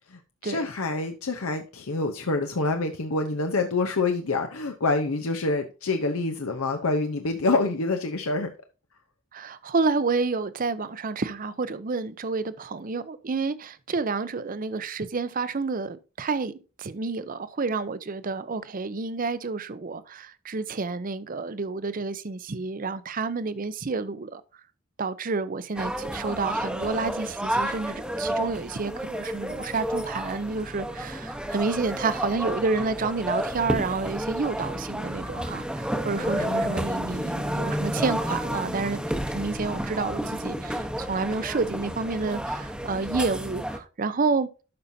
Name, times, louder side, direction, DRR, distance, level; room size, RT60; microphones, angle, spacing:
voice 1, 0.1-8.5 36.1-37.0, left 3 dB, 85° left, 0.8 m, -27 dB
voice 2, 9.3-24.4 25.0-39.0 39.3-44.5, right 4 dB, 40° right, 0.6 m, -29 dB
sound 1, 25.7-43.8, equal, 5° right, 0.9 m, -31 dB
12.0 x 5.6 x 2.7 m
head